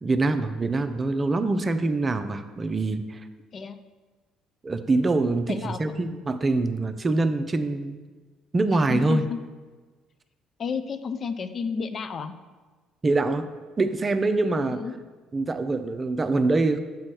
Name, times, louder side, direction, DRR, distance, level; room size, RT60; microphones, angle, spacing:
voice 1, 0.0-3.2 4.6-8.0 8.5-9.2 13.0-13.5 13.8-14.8 15.3-16.8, right 2 dB, 30° right, 9 dB, 0.5 m, -24 dB
voice 2, 5.5-5.8 8.7-9.4 10.6-12.3 14.7-14.9, left 5 dB, 45° left, 10 dB, 0.4 m, -31 dB
7.0 x 3.2 x 6.0 m, 1.3 s
hypercardioid pair, 55°, 0 cm